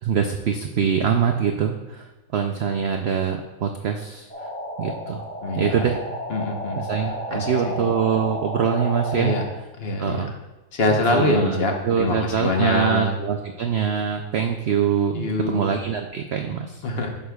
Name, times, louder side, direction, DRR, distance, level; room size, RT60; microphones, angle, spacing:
voice 1, 0.0-4.3 4.8-5.2 5.6-6.0 6.8-9.3 10.0-10.3 11.1-16.8, right 7 dB, 80° right, 4 dB, 0.5 m, -24 dB
sound 1, 4.3-9.4, equal, 5° left, 1.1 m, -31 dB
voice 2, 5.4-5.9 6.3-6.8 7.3-7.7 9.1-9.4 9.8-10.2 10.7-13.1 15.1-15.6 16.8-17.1, left 2 dB, 45° left, 2 dB, 1.0 m, -24 dB
10.5 x 6.5 x 2.3 m, 1.1 s
omnidirectional pair, 1.7 m